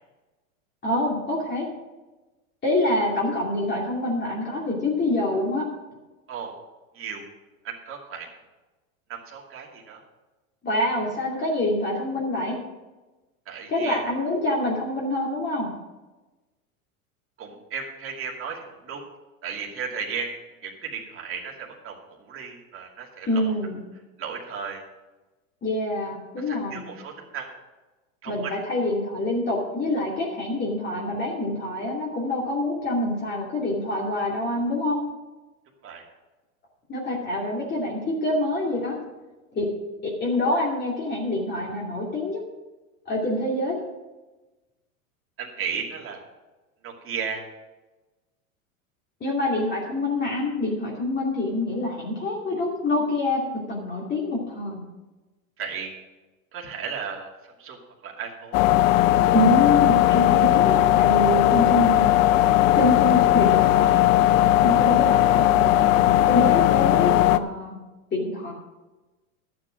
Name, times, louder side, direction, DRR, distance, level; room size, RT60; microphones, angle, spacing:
voice 1, 0.8-1.7 2.6-5.6 10.6-12.6 13.7-15.7 23.3-23.8 25.6-26.8 28.3-35.0 36.9-39.0 39.5-39.7 40.0-42.4 43.1-43.8 49.2-53.4 53.7-54.8 59.3-62.0 62.8-64.4 64.6-67.8 68.1-68.5, left 1 dB, 25° left, -3 dB, 2.7 m, -26 dB
voice 2, 7.6-8.3 9.1-10.0 13.5-14.0 17.4-19.0 19.4-20.3 20.6-23.5 24.2-24.8 26.5-27.5 28.2-28.5 35.8-36.0 45.4-46.2 46.8-47.4 55.6-55.9 56.5-57.3 57.6-58.6, right 6 dB, 30° right, -2 dB, 2.6 m, -35 dB
sound 1, 58.5-67.4, left 14 dB, 65° left, 0.7 m, -18 dB
11.5 x 7.7 x 6.2 m, 1.1 s
hypercardioid pair, 115°, 43 cm